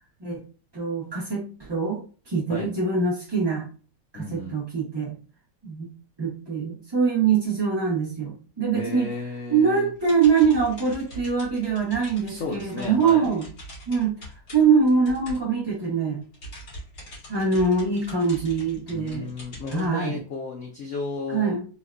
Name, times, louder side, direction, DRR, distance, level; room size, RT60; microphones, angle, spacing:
voice 1, 0.7-3.7 4.1-5.1 5.6-5.9 6.2-9.1 9.5-13.5 13.9-14.2 14.5-16.2 17.3-19.3 19.7-20.2 21.3-21.6, right 5 dB, 30° right, -7 dB, 0.4 m, -23 dB
voice 2, 4.1-4.6 8.7-9.9 12.3-13.3 18.9-21.5, left 3 dB, 80° left, 0 dB, 0.6 m, -33 dB
sound 1, 9.9-15.9 16.2-19.9, equal, 65° left, 2.2 m, -43 dB
4.1 x 2.2 x 2.4 m, 0.37 s
omnidirectional pair, 2.0 m